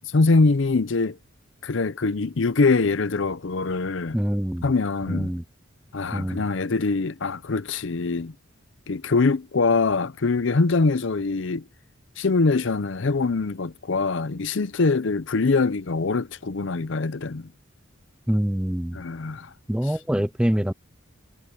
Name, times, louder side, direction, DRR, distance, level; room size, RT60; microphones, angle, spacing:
voice 1, 0.1-1.2 1.6-4.2 4.6-5.3 5.9-8.3 8.9-11.6 12.2-17.5 18.9-19.5, left 3 dB, 65° left, 0.6 m, -23 dB
voice 2, 4.1-4.7 5.1-5.4 6.1-6.4 18.3-19.0 19.7-20.7, equal, 5° right, 0.4 m, -25 dB
head